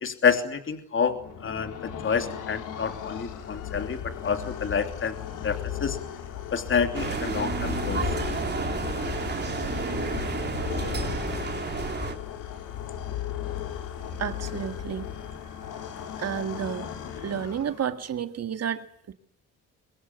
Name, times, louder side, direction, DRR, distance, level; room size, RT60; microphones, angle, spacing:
voice 1, 0.0-1.1 1.4-5.1 5.4-6.0 6.5-8.0, left 6 dB, 40° left, 7 dB, 3.1 m, -28 dB
sound 1, 1.0-18.0, left 9 dB, 90° left, 3.7 m, -35 dB
sound 2, 6.9-12.1, right 5 dB, 35° right, 3.3 m, -31 dB
voice 2, 14.2-15.1 16.2-16.9 17.2-19.1, right 8 dB, 55° right, 9 dB, 2.2 m, -31 dB
23.5 x 22.0 x 9.7 m, 0.70 s
cardioid pair, 90°, 30 cm